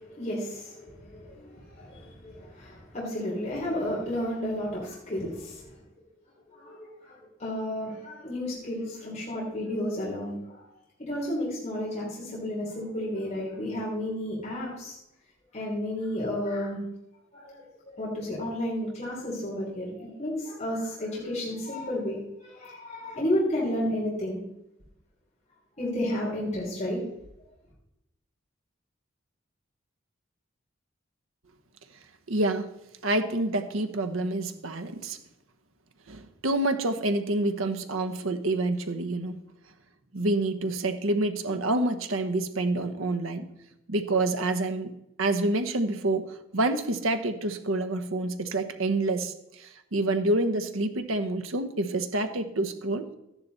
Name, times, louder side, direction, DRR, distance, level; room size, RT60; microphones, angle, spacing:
voice 1, 0.0-5.7 6.5-10.7 11.0-15.0 15.5-16.8 17.3-24.4 25.8-27.1, left 1 dB, 35° left, -5 dB, 3.4 m, -32 dB
voice 2, 32.3-32.7 33.0-35.2 36.1-39.4 40.1-43.5 43.9-53.0, right 2 dB, 90° right, 9 dB, 1.1 m, -28 dB
13.5 x 10.5 x 4.1 m, 0.88 s
head